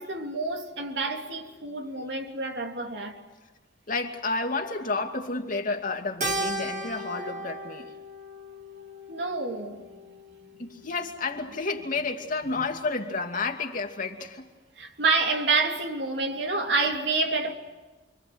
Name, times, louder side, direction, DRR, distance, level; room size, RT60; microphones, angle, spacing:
voice 1, 0.0-3.2 9.1-9.9 10.6-10.7 14.8-17.5, right 3 dB, 70° right, 3.3 m, -28 dB
voice 2, 3.9-7.9 10.6-14.5, left 3 dB, 50° left, 2.6 m, -31 dB
Keyboard (musical), 6.2-10.8, right 1 dB, 45° right, 2.1 m, -36 dB
29.0 x 24.5 x 8.0 m
head